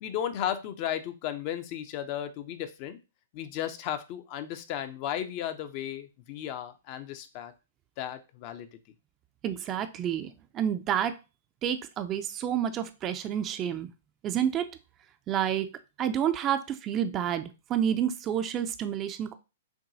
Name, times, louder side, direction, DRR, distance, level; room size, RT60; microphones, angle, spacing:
voice 1, 0.0-3.0 3.3-7.5 8.0-8.7, left 10 dB, 45° left, 9 dB, 0.5 m, -34 dB
voice 2, 9.4-11.2 11.6-13.9 14.2-14.7 15.3-15.7 16.0-19.3, right 9 dB, 30° right, 9 dB, 0.4 m, -29 dB
5.9 x 2.3 x 2.7 m, 0.28 s
hypercardioid pair, 120°, 0 cm